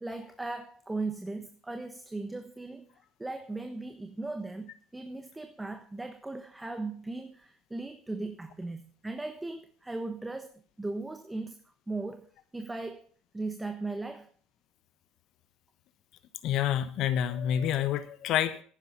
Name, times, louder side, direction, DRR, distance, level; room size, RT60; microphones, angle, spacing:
voice 1, 0.0-2.8 3.2-10.5 10.8-11.6 11.9-13.1 13.3-14.3, right 2 dB, 10° right, 9 dB, 1.2 m, -37 dB
voice 2, 16.4-18.6, left 10 dB, 60° left, 13 dB, 1.2 m, -28 dB
10.5 x 9.7 x 6.8 m, 0.43 s
hypercardioid pair, 75°, 0 cm